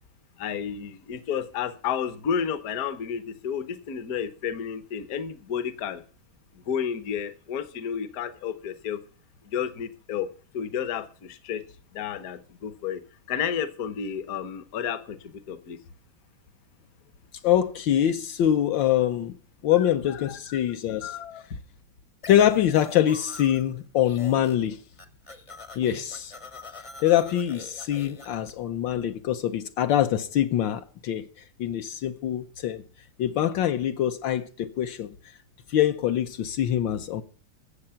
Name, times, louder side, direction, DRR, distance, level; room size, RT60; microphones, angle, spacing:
voice 1, 0.4-6.0 6.6-9.0 9.4-10.3 10.5-11.6 11.9-13.0 13.3-15.8 19.8-20.6 21.0-21.4, left 8 dB, 55° left, 1.3 m, -31 dB
voice 2, 17.4-19.4 19.6-21.1 22.3-24.8 25.8-26.3 27.0-31.3 31.6-32.8 33.2-35.1 35.7-37.2, left 11 dB, 75° left, 1.4 m, -24 dB
sound 1, 22.2-23.7 24.0-24.7 24.9-28.5, left 4 dB, 25° left, 0.7 m, -44 dB
15.5 x 7.3 x 5.7 m
omnidirectional pair, 2.1 m